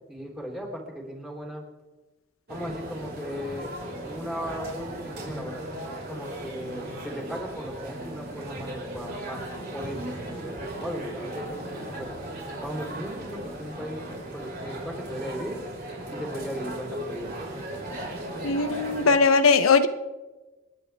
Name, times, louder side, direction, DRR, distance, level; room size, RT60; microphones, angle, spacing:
voice 1, 0.1-1.6 2.5-3.8 4.0-9.4 9.7-12.1 12.6-14.0 14.3-15.5 16.1-17.3 18.4-18.6, equal, ahead, -1 dB, 3.6 m, -37 dB
sound 1, 2.5-19.2, right 1 dB, 50° right, 5.1 m, -37 dB
voice 2, 18.4-19.9, left 4 dB, 85° left, 9 dB, 0.8 m, -19 dB
29.0 x 10.5 x 3.5 m, 1.2 s
head